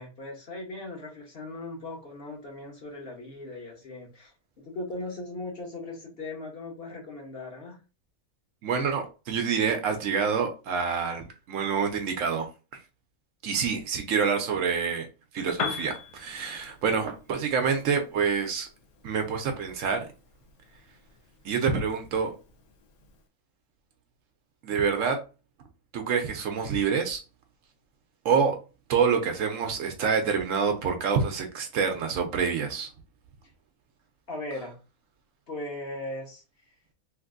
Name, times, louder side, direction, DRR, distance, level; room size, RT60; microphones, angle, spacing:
voice 1, 0.0-4.3 4.6-7.8 34.3-34.8 35.5-36.4, left 2 dB, 45° left, 1.1 m, -38 dB
voice 2, 8.6-12.5 13.4-15.1 15.3-18.7 19.0-20.1 21.4-22.3 24.6-25.2 25.9-27.2 28.2-28.6 28.9-32.9, right 6 dB, 70° right, 0.9 m, -27 dB
Piano, 15.5-23.3, left 5 dB, 85° left, 1.1 m, -41 dB
3.2 x 2.6 x 2.4 m
omnidirectional pair, 1.5 m